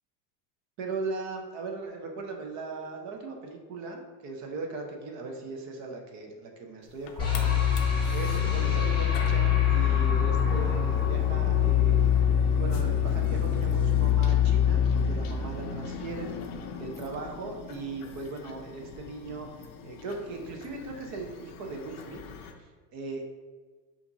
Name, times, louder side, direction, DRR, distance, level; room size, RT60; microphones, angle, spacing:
voice 1, 0.8-12.1 12.6-16.3 16.8-22.2 22.9-23.2, right 3 dB, 35° right, 2 dB, 0.5 m, -38 dB
sound 1, 6.8-22.5, left 5 dB, 50° left, 0.5 m, -41 dB
sound 2, 7.2-16.3, left 9 dB, 10° left, 0.9 m, -24 dB
5.7 x 2.6 x 2.6 m, 1.4 s
supercardioid pair, 150°, 50 cm